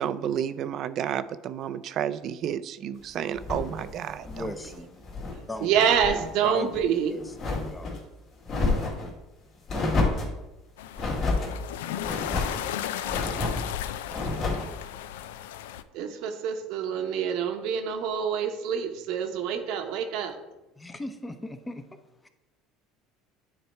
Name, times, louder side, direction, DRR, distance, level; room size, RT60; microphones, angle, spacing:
voice 1, 0.0-4.5, right 9 dB, 55° right, 13 dB, 0.4 m, -31 dB
sound 1, 3.3-5.4 5.7-6.3 6.7-8.0 8.4-9.1 9.7-10.4 11.0-11.5 12.0-12.6 13.0-13.7 14.1-14.7, left 3 dB, 50° left, 2.2 m, -29 dB
voice 2, 4.2-5.0 5.5-5.7 6.4-7.3 7.7-8.0 20.8-21.8 22.2-22.3, left 1 dB, 15° left, 8 dB, 0.8 m, -37 dB
voice 3, 5.6-7.1 15.9-20.4, right 7 dB, 70° right, 6 dB, 0.9 m, -26 dB
sound 2, 10.8-15.8, left 11 dB, 85° left, 0.3 m, -35 dB
9.5 x 3.3 x 4.5 m, 1.0 s
supercardioid pair, 90°, 0 cm